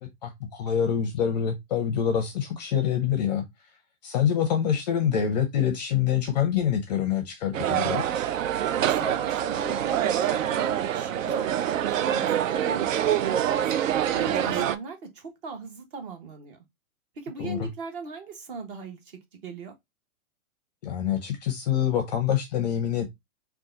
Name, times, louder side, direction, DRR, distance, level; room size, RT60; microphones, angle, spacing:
voice 1, 0.0-3.4 4.0-8.0 14.3-14.6 17.4-17.7 20.8-23.1, left 9 dB, 30° left, 0.5 m, -26 dB
sound 1, 7.5-14.8, right 10 dB, 65° right, 0.5 m, -25 dB
voice 2, 8.8-13.7 14.1-16.6 17.2-19.7, right 4 dB, 35° right, 1.1 m, -40 dB
3.7 x 2.4 x 3.8 m
hypercardioid pair, 155°, 43 cm